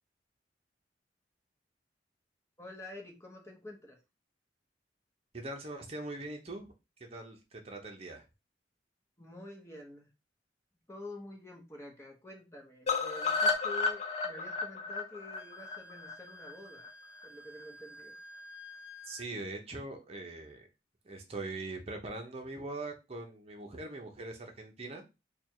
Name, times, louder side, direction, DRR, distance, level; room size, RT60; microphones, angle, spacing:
voice 1, 2.6-4.0 9.2-10.1 10.9-16.9 17.2-18.1, left 2 dB, 15° left, 0 dB, 1.0 m, -48 dB
voice 2, 5.3-6.7 7.1-8.3 19.0-20.7 21.0-25.0, right 2 dB, 35° right, 3 dB, 0.8 m, -42 dB
sound 1, 12.9-16.9 17.2-17.3 17.6-17.7 18.0-18.1, left 4 dB, 40° left, 0.6 m, -32 dB
Wind instrument woodwind instrument, 15.3-19.3, left 1 dB, 75° left, 0.9 m, -52 dB
3.4 x 2.4 x 4.5 m, 0.27 s
head